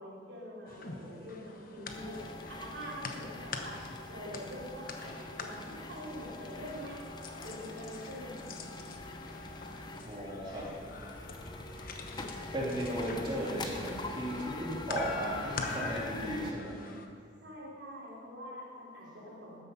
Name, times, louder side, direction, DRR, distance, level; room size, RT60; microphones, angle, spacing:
voice 1, 0.0-3.8 4.1-7.0 7.4-9.0 17.4-19.6, equal, 75° right, -6 dB, 3.8 m, -45 dB
sound 1, 0.7-17.1, left 4 dB, 50° left, 1.0 m, -45 dB
sound 2, 1.9-16.5, left 2 dB, 25° left, 0.8 m, -44 dB
voice 2, 10.0-10.7 12.5-16.9, right 1 dB, 25° right, -6 dB, 3.1 m, -36 dB
13.0 x 9.6 x 5.6 m, 2.3 s
head